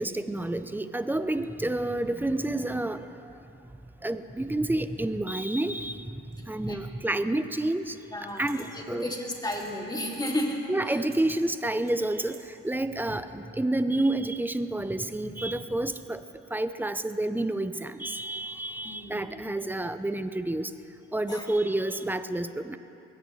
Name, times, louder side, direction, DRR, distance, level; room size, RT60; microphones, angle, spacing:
voice 1, 0.0-3.1 4.0-6.1 6.4-8.0 8.4-9.1 10.7-12.4 12.6-16.2 16.5-20.7 21.1-22.8, right 1 dB, 5° right, 11 dB, 0.6 m, -29 dB
sound 1, 7.5-7.6 8.3-8.6 9.5-9.8 10.1-10.5 10.8-11.4 11.9-12.4, right 5 dB, 45° right, 3.3 m, -49 dB
voice 2, 8.1-11.0 18.4-18.5 18.8-19.5 21.3-21.5, left 1 dB, 15° left, -1 dB, 2.5 m, -34 dB
21.5 x 16.5 x 3.2 m, 2.9 s
cardioid pair, 90°, 30 cm